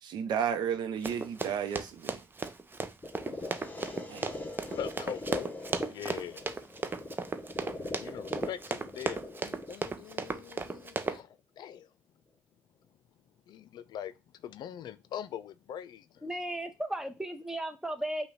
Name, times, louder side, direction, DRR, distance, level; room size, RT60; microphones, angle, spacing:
voice 1, 0.0-2.2 4.1-4.3, right 8 dB, 70° right, 0.7 m, -32 dB
Run, 1.0-11.2, right 3 dB, 25° right, 0.6 m, -35 dB
sound 1, 3.0-11.0, left 2 dB, 20° left, 1.1 m, -42 dB
voice 2, 4.7-5.5 5.9-6.5 7.7-11.9 13.5-14.1 14.4-16.2, left 9 dB, 65° left, 0.4 m, -42 dB
voice 3, 16.2-18.3, right 1 dB, 5° right, 1.0 m, -35 dB
5.5 x 2.3 x 3.9 m
hypercardioid pair, 50°, 8 cm